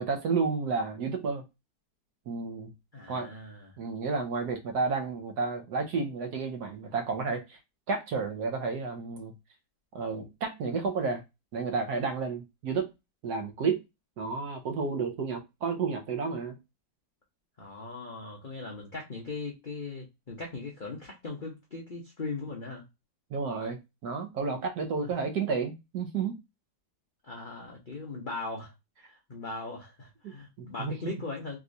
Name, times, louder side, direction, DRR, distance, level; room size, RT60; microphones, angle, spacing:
voice 1, 0.0-1.4 2.3-2.7 3.1-3.3 3.8-7.6 7.9-9.3 9.9-11.2 11.5-12.9 13.2-13.8 14.2-16.6 23.3-26.4 30.2-30.3 30.8-30.9, right 4 dB, 65° right, 1.2 m, -31 dB
voice 2, 2.9-3.7 17.6-22.8 25.0-25.1 27.2-28.7 29.0-31.6, left 3 dB, 55° left, 0.5 m, -39 dB
3.5 x 3.0 x 2.5 m
omnidirectional pair, 2.0 m